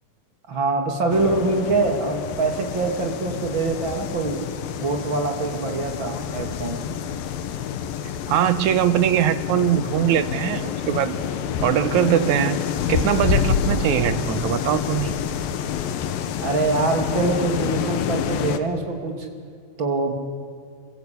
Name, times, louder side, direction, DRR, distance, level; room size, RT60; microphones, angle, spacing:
voice 1, 0.5-4.4 4.8-6.8 16.4-19.3 19.8-20.1, right 3 dB, 35° right, 3 dB, 3.1 m, -24 dB
sound 1, 1.1-18.6, left 8 dB, 85° left, 3.0 m, -27 dB
voice 2, 8.3-11.1 11.6-12.6 12.9-15.1, right 11 dB, 70° right, 11 dB, 2.2 m, -21 dB
27.5 x 24.0 x 8.5 m, 2.2 s
omnidirectional pair, 3.9 m